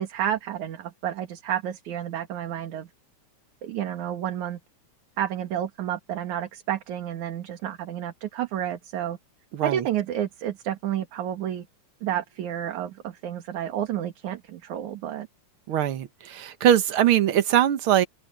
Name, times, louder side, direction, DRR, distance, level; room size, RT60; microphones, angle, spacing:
voice 1, 0.0-2.9 3.6-4.6 5.2-9.2 9.6-11.7 12.0-15.3, right 11 dB, 75° right, 3.0 m, -30 dB
voice 2, 9.5-9.8 15.7-18.0, right 11 dB, 55° right, 1.6 m, -21 dB
open air
omnidirectional pair, 3.4 m